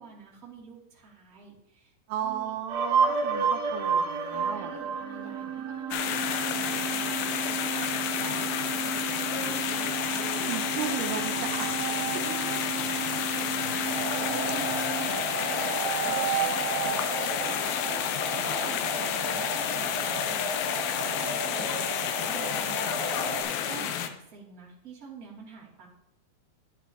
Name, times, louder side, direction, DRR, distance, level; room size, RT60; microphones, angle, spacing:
voice 1, 0.0-1.9 2.2-2.5 4.3-10.8 12.2-17.8 18.4-20.5 21.2-25.9, right 4 dB, 25° right, -6 dB, 2.6 m, -48 dB
voice 2, 2.1-4.7 10.5-11.7 23.7-24.0, right 9 dB, 85° right, 6 dB, 2.8 m, -35 dB
sound 1, 2.7-18.6, right 7 dB, 70° right, 2.9 m, -32 dB
sound 2, 5.9-24.1, left 9 dB, 75° left, 2.3 m, -30 dB
sound 3, 13.8-23.4, right 1 dB, 60° left, 3.1 m, -35 dB
11.5 x 10.0 x 2.9 m, 0.83 s
omnidirectional pair, 4.5 m